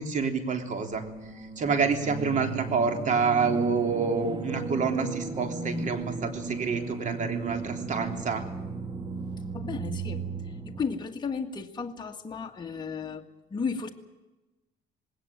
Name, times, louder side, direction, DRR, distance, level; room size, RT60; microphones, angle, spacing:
voice 1, 0.0-8.4, right 5 dB, 50° right, 5 dB, 3.4 m, -28 dB
sound 1, 0.9-10.8, right 4 dB, 25° right, 2.0 m, -35 dB
voice 2, 9.5-13.3 13.5-13.9, left 5 dB, 25° left, 3 dB, 2.0 m, -34 dB
20.0 x 18.0 x 9.1 m, 1.1 s
cardioid pair, 110°, 17 cm